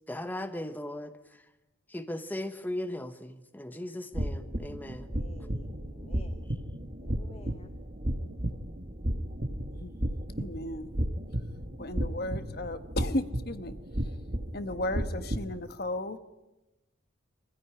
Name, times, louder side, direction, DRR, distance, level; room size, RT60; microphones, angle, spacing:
voice 1, 0.1-1.1 1.9-5.1, left 1 dB, 10° left, 8 dB, 1.0 m, -37 dB
sound 1, 4.1-15.5, equal, 45° right, 2.0 m, -34 dB
voice 2, 5.1-6.5 7.0-7.8, left 2 dB, 30° left, 9 dB, 0.9 m, -52 dB
voice 3, 10.3-10.9 11.8-13.7 14.5-16.2, left 1 dB, 50° left, 10 dB, 1.3 m, -34 dB
24.5 x 15.5 x 10.0 m, 1.0 s
head